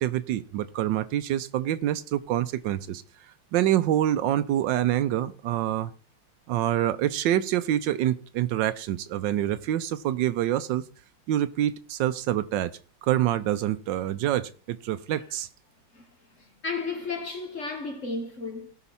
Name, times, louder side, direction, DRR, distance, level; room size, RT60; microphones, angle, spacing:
voice 1, 0.0-3.0 3.5-5.9 6.5-10.8 11.3-12.7 13.0-15.5, right 12 dB, 75° right, 1.3 m, -26 dB
voice 2, 16.4-18.7, left 3 dB, 45° left, 1.6 m, -33 dB
17.0 x 5.8 x 4.2 m
omnidirectional pair, 2.1 m